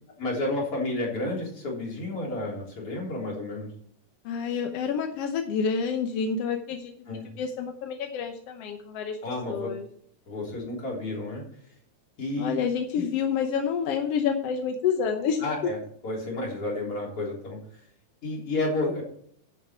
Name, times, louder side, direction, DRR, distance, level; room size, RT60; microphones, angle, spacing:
voice 1, 0.2-3.7 7.1-7.3 9.2-9.7 10.3-11.4 12.2-12.6 12.9-13.0 15.4-15.8 16.0-17.6 18.2-19.0, left 2 dB, 45° left, -3 dB, 4.5 m, -31 dB
voice 2, 4.2-6.9 7.4-9.2 9.5-9.8 12.4-15.4, left 6 dB, 65° left, 4 dB, 1.6 m, -28 dB
11.0 x 7.6 x 4.5 m, 0.64 s
omnidirectional pair, 3.6 m